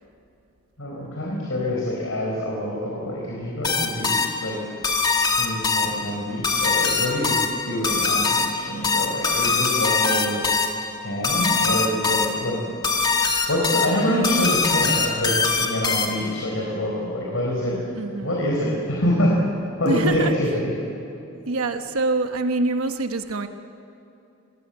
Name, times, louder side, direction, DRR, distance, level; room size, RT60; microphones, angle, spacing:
voice 1, 0.8-4.6 5.4-10.4 11.0-12.6 13.5-17.8 18.2-19.4 19.8-20.5, left 1 dB, 75° left, -2 dB, 4.7 m, -26 dB
sound 1, 3.6-16.4, left 4 dB, 20° left, 1.6 m, -23 dB
voice 2, 14.1-14.6 17.9-18.5 19.8-20.3 21.5-23.5, right 2 dB, 90° right, 7 dB, 1.1 m, -25 dB
27.0 x 21.0 x 8.0 m, 2.8 s
head